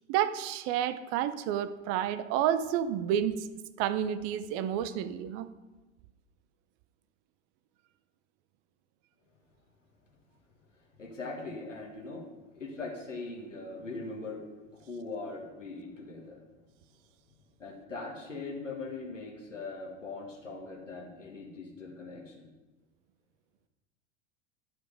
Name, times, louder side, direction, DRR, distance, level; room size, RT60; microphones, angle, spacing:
voice 1, 0.1-3.5 3.8-5.5, right 10 dB, 40° right, 13 dB, 0.6 m, -30 dB
voice 2, 11.0-12.2 12.6-14.4 14.9-16.4 17.6-22.5, left 3 dB, 85° left, -1 dB, 1.7 m, -41 dB
11.5 x 4.8 x 5.3 m, 1.1 s
figure-of-eight pair, 80°, 37 cm